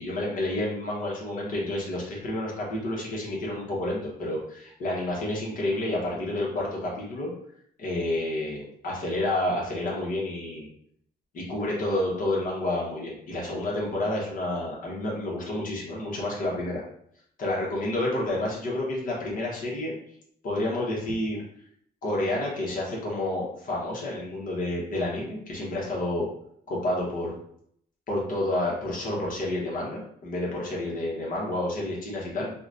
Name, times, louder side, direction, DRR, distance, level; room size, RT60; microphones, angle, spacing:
voice 1, 0.0-7.3 7.8-10.7 11.3-16.8 17.4-19.9 20.4-21.4 22.0-26.3 26.7-27.3 28.1-32.5, left 1 dB, 55° left, -4 dB, 1.1 m, -29 dB
4.8 x 2.2 x 2.5 m, 0.68 s
cardioid pair, 145°, 17 cm